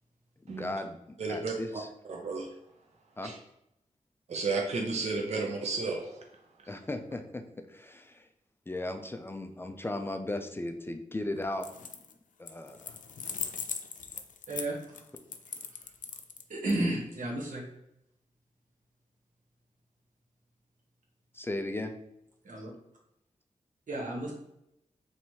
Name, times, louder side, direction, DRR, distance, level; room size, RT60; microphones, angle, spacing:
voice 1, 0.4-1.9 3.2-3.3 6.7-8.3 8.7-11.9 12.4-13.0 21.3-22.0, left 2 dB, 15° left, 6 dB, 0.3 m, -37 dB
voice 2, 1.2-1.5 2.1-2.5 3.2-3.3 4.3-6.2, right 3 dB, 60° right, 1 dB, 0.5 m, -32 dB
sound 1, 11.5-12.1 12.5-16.7, left 6 dB, 85° left, 0.4 m, -39 dB
voice 3, 14.5-14.8 16.5-17.6 22.4-22.7 23.9-24.3, right 1 dB, 85° right, -3 dB, 1.2 m, -32 dB
3.2 x 2.8 x 4.5 m, 0.82 s
wide cardioid pair, 145°, 13 cm